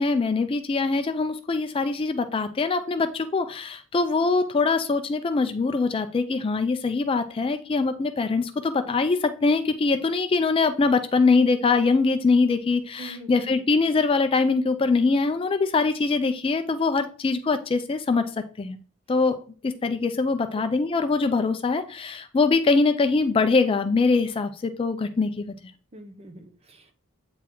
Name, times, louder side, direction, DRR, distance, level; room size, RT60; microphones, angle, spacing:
voice 1, 0.0-18.8 19.1-19.4 19.6-25.5, left 4 dB, 25° left, 9 dB, 0.3 m, -23 dB
voice 2, 13.0-13.6 20.5-20.9 25.9-26.9, right 1 dB, 30° right, 6 dB, 0.7 m, -44 dB
8.2 x 3.9 x 3.0 m, 0.40 s
head